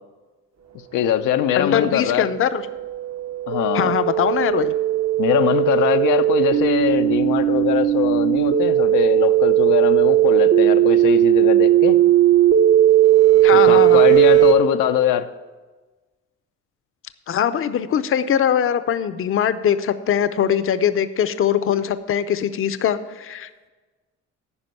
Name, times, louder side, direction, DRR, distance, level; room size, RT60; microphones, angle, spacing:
voice 1, 0.9-2.3 3.5-3.9 5.2-12.0 13.5-15.3, left 10 dB, 85° left, 8 dB, 0.6 m, -21 dB
sound 1, 1.3-14.5, right 13 dB, 60° right, 1.2 m, -17 dB
voice 2, 1.5-2.6 3.7-4.7 13.4-14.1 17.3-23.7, left 9 dB, 45° left, 12 dB, 0.6 m, -21 dB
9.8 x 5.2 x 7.7 m, 1.3 s
cardioid pair, 90°, 30 cm